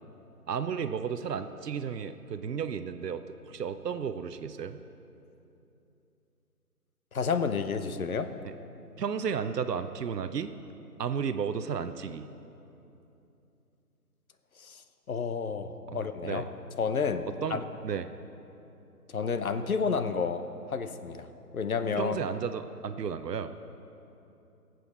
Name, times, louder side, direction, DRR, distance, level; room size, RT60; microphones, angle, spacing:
voice 1, 0.5-4.8 8.4-8.5 9.0-10.5 11.0-12.3 15.9-16.5 17.4-18.1 22.0-23.5, right 7 dB, 80° right, 10 dB, 0.7 m, -33 dB
voice 2, 7.1-8.3 14.6-14.8 15.1-16.4 16.8-17.6 19.1-20.4 20.7-21.3 21.5-22.2, left 5 dB, 60° left, 10 dB, 0.8 m, -30 dB
18.0 x 7.8 x 4.2 m, 2.9 s
figure-of-eight pair, 170°, 47 cm